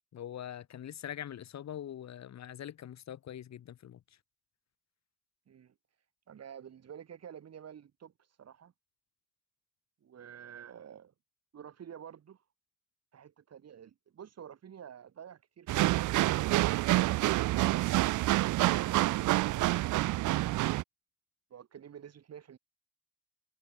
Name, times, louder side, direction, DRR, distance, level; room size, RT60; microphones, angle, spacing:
voice 1, 0.1-4.0, left 10 dB, 60° left, 2.4 m, -43 dB
voice 2, 6.3-8.1 8.4-8.7 10.0-11.1 11.5-12.4 13.1-16.0 17.1-20.3 21.5-22.6, right 8 dB, 55° right, 4.2 m, -50 dB
sound 1, 15.7-20.8, right 17 dB, 80° right, 0.6 m, -27 dB
cardioid pair, 90°, 30 cm